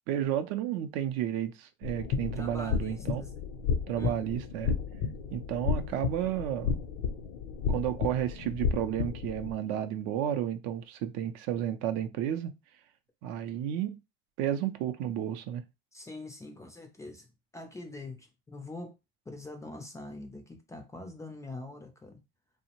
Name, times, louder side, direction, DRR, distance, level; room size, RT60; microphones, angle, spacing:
voice 1, 0.1-3.3 3.9-4.7 5.3-6.8 7.7-12.5 13.2-14.0 14.4-15.6, right 10 dB, 60° right, 0.4 m, -32 dB
sound 1, 1.8-9.5, left 6 dB, 60° left, 0.5 m, -32 dB
voice 2, 2.3-3.4 4.0-4.2 15.9-19.0 19.3-22.2, left 2 dB, 10° left, 0.4 m, -44 dB
2.6 x 2.0 x 2.8 m
supercardioid pair, 115°, 30 cm